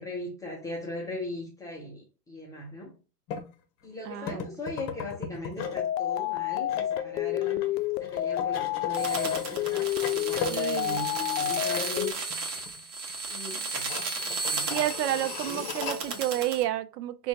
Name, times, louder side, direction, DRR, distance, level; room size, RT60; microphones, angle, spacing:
voice 1, 0.0-2.9 3.8-7.7 8.0-12.1 13.3-13.9 14.2-14.8 15.5-16.2, left 1 dB, 10° left, 0.3 m, -39 dB
sound 1, 3.3-3.5 4.3-5.8 6.2-11.5 11.7-11.9 12.3-12.8 13.1-13.2 13.7-16.0, left 6 dB, 35° left, 0.7 m, -38 dB
voice 2, 4.0-4.4 10.5-11.0 14.7-17.3, right 13 dB, 75° right, 0.6 m, -30 dB
sound 2, 5.6-12.1, left 13 dB, 75° left, 0.5 m, -29 dB
sound 3, 8.9-16.6, right 3 dB, 35° right, 1.0 m, -34 dB
4.3 x 2.2 x 2.7 m
hypercardioid pair, 110°, 48 cm